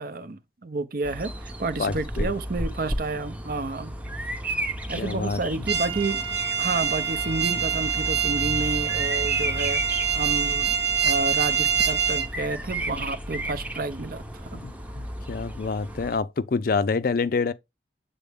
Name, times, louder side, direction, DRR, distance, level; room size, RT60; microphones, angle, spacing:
voice 1, 0.0-3.9 4.9-6.2 6.6-9.8 10.1-10.7 11.0-14.2 14.5-14.6, right 3 dB, 55° right, 0.7 m, -30 dB
Bird vocalization bird call bird song, 1.0-16.2, right 1 dB, 10° right, 0.7 m, -33 dB
voice 2, 1.8-2.3 5.0-5.4 14.5-17.5, left 4 dB, 55° left, 0.4 m, -27 dB
sound 1, 5.7-12.3, right 7 dB, 80° right, 1.4 m, -25 dB
7.0 x 4.1 x 3.5 m
head